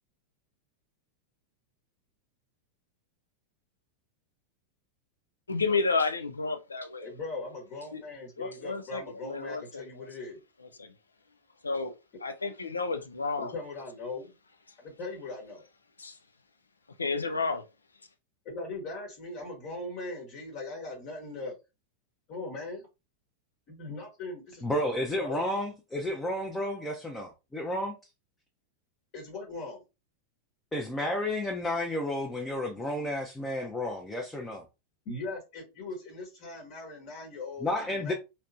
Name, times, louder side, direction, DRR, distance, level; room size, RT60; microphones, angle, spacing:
voice 1, 5.5-7.1 7.9-8.0 8.4-10.1 10.8-10.9 11.6-11.9 12.2-13.5 16.0-16.2 17.0-17.6, left 4 dB, 75° left, 0.5 m, -31 dB
voice 2, 7.0-10.4 13.4-14.3 14.8-15.6 18.4-21.5 22.3-22.9 23.7-25.5 29.1-29.8 35.0-38.1, left 2 dB, 40° left, 1.2 m, -40 dB
voice 3, 24.6-27.9 30.7-34.6 37.6-38.1, left 1 dB, 10° left, 0.6 m, -31 dB
3.2 x 2.9 x 2.5 m
figure-of-eight pair, 90°, 0 cm